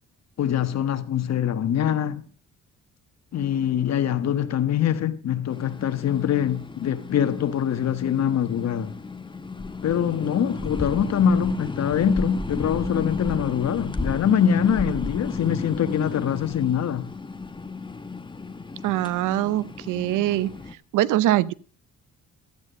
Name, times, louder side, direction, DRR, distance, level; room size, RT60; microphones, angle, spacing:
voice 1, 0.4-2.3 3.3-9.0 9.8-17.1, left 8 dB, 60° left, 1.4 m, -24 dB
sound 1, 5.5-20.7, left 3 dB, 15° left, 1.1 m, -34 dB
voice 2, 18.8-20.5 20.9-21.5, right 14 dB, 85° right, 0.7 m, -23 dB
13.5 x 9.3 x 5.1 m
cardioid pair, 90°, 30 cm